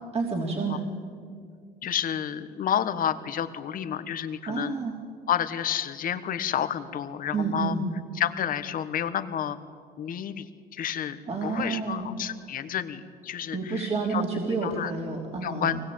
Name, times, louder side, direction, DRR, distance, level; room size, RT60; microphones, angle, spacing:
voice 1, 0.1-0.8 4.5-4.9 7.3-7.9 11.3-12.1 13.5-15.8, right 4 dB, 40° right, 0 dB, 3.3 m, -29 dB
voice 2, 1.8-4.8 5.3-7.7 8.2-9.6 10.0-10.5 10.7-14.2 14.6-14.9 15.4-15.8, left 9 dB, 55° left, 10 dB, 1.4 m, -30 dB
24.0 x 19.5 x 8.7 m, 2.1 s
cardioid pair, 110°, 17 cm